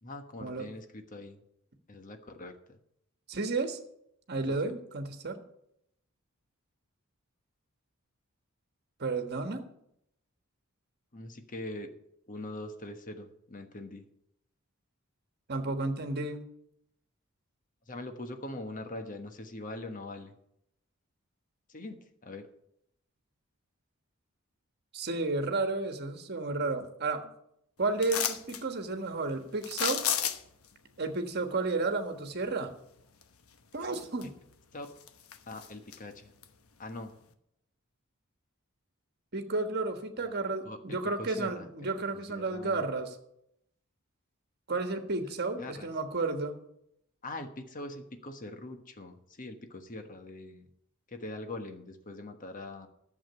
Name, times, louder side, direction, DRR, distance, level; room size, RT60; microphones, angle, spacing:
voice 1, 0.0-1.4 1.9-2.8 4.5-4.6 11.1-11.9 12.3-14.1 17.9-20.3 21.7-22.5 34.7-34.9 35.5-36.3 36.8-37.1 40.2-40.3 40.6-41.9 42.3-42.8 45.2-45.9 47.2-50.7 51.1-52.9, left 2 dB, 40° left, 7 dB, 1.3 m, -42 dB
voice 2, 3.3-3.8 4.3-5.4 9.0-9.6 15.5-16.4 24.9-27.3 27.8-30.0 31.0-32.7 33.7-34.3 39.3-43.2 44.7-46.6, right 3 dB, 50° right, 6 dB, 1.4 m, -32 dB
sound 1, 28.0-28.6 29.6-30.7 33.2-33.3 33.8-34.5 34.9-36.0 36.4-36.5, left 9 dB, 90° left, 1.0 m, -32 dB
11.5 x 7.4 x 6.9 m, 0.75 s
head